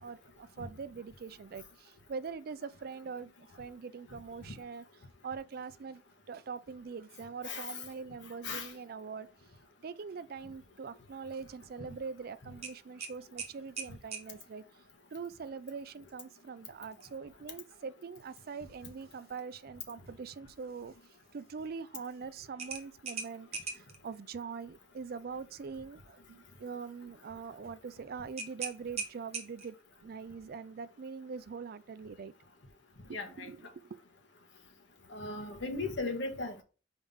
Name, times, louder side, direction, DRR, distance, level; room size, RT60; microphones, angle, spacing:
voice 1, 0.0-3.3 3.6-4.8 5.2-6.0 6.3-9.3 9.8-14.6 15.1-20.9 21.3-32.3 33.1-33.6 33.8-34.0, right 5 dB, 55° right, 0.4 m, -43 dB
voice 2, 7.4-7.8 8.4-8.7 33.1-33.5 35.1-36.6, left 3 dB, 85° left, 1.4 m, -37 dB
sound 1, 12.6-14.3 16.9-17.1 17.6-17.7 22.6-24.0 28.4-29.8, right 5 dB, 35° right, 1.0 m, -40 dB
4.8 x 3.6 x 5.5 m
head